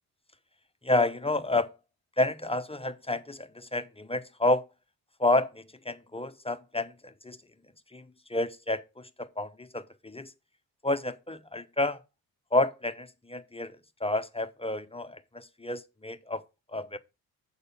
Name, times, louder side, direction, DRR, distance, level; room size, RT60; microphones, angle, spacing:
voice 1, 0.8-1.7 2.2-4.6 5.2-7.4 7.9-8.0 8.3-10.3 10.8-12.0 12.5-13.8 14.0-16.4 16.7-17.0, left 2 dB, 15° left, 0.9 m, -30 dB
7.9 x 4.1 x 6.9 m
supercardioid pair, 50°, 43 cm